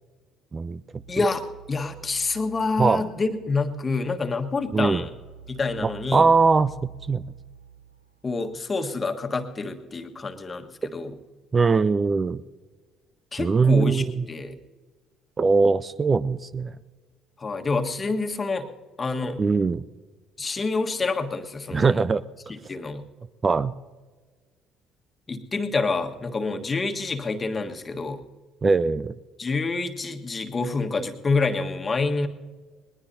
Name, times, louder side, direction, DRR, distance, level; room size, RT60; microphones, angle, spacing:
sound 1, 1.0-8.6, right 6 dB, 90° right, 0.5 m, -47 dB
voice 1, 1.1-5.1 5.5-6.3 8.2-11.1 13.3-14.6 17.4-18.7 19.0-19.4 20.4-22.1 22.5-23.1 25.3-28.2 29.4-32.3, left 3 dB, 30° left, 6 dB, 1.4 m, -27 dB
voice 2, 5.8-7.2 11.5-12.4 13.4-14.1 15.4-16.7 19.4-19.8 21.7-22.2 23.4-23.7 28.6-29.1, right 4 dB, 30° right, 17 dB, 0.4 m, -21 dB
20.5 x 20.5 x 2.8 m, 1.4 s
figure-of-eight pair, 50°, 0 cm